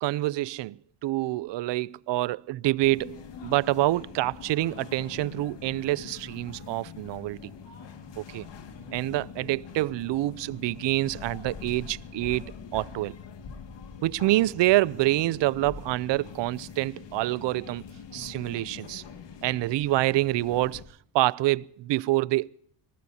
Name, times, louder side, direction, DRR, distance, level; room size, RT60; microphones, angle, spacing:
voice 1, 0.0-7.5 8.2-8.5 8.9-13.1 14.0-17.8 18.1-19.0 19.4-20.8 21.1-22.5, right 17 dB, 65° right, 0.5 m, -27 dB
sound 1, 2.8-20.8, left 6 dB, 60° left, 2.2 m, -44 dB
26.0 x 19.5 x 2.8 m
cardioid pair, 115°, 47 cm